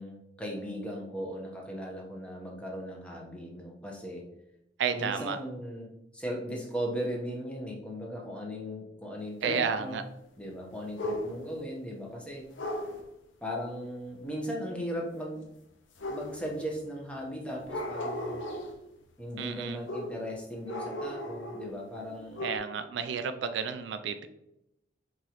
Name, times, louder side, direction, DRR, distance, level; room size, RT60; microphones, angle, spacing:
voice 1, 0.0-4.3 4.9-10.0 10.4-12.5 13.4-15.4 16.1-18.4 19.2-22.5, equal, 5° left, -1 dB, 0.9 m, -37 dB
voice 2, 4.8-5.4 9.4-10.0 19.4-19.8 22.4-24.3, right 6 dB, 70° right, 9 dB, 0.3 m, -31 dB
sound 1, 11.0-11.6 12.6-13.0 16.0-16.7 17.6-18.8 19.9-20.3 20.7-21.8 22.1-22.6, left 1 dB, 85° left, 0.7 m, -36 dB
4.8 x 3.6 x 2.9 m, 0.85 s
head